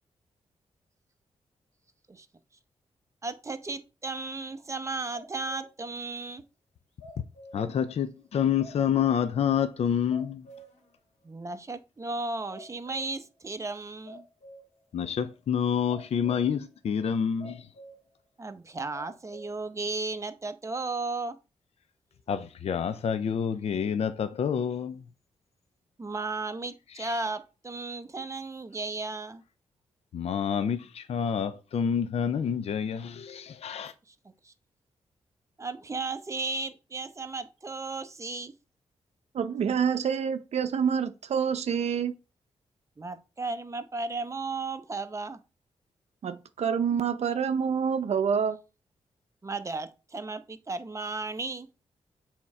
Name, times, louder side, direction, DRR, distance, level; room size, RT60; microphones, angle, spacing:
voice 1, 3.2-6.4 11.2-14.2 18.4-21.4 26.0-29.4 34.1-34.2 34.4-34.5 35.6-38.5 43.0-45.4 46.9-47.0 49.4-51.7, right 3 dB, 25° right, 0.8 m, -35 dB
sound 1, 5.1-5.9 6.2-6.3 7.0-7.8 8.2-8.3 8.6-9.4 9.7-9.8 10.1-10.9 11.3-11.4 12.1-12.2 12.5-13.3 14.1-14.8 15.9-16.6 17.4-18.1 18.5-18.6 18.9-19.6 20.1-20.2, right 1 dB, 85° left, 1.8 m, -49 dB
voice 2, 7.5-10.5 14.9-17.7 22.3-25.1 26.9-27.2 30.1-33.9, left 8 dB, 65° left, 0.5 m, -28 dB
voice 3, 39.3-42.1 46.2-48.6, right 7 dB, 70° right, 0.6 m, -27 dB
6.9 x 3.7 x 4.3 m
cardioid pair, 85°, 12 cm